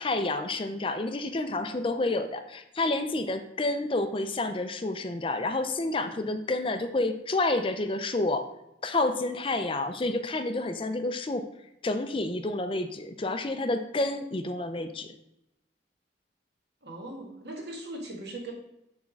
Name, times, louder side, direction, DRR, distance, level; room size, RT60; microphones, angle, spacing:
voice 1, 0.0-8.5 8.8-11.5 11.8-15.1, left 2 dB, 30° left, 8 dB, 0.5 m, -29 dB
voice 2, 16.8-18.5, right 2 dB, 70° right, 0 dB, 1.9 m, -39 dB
7.2 x 3.6 x 6.3 m, 0.83 s
head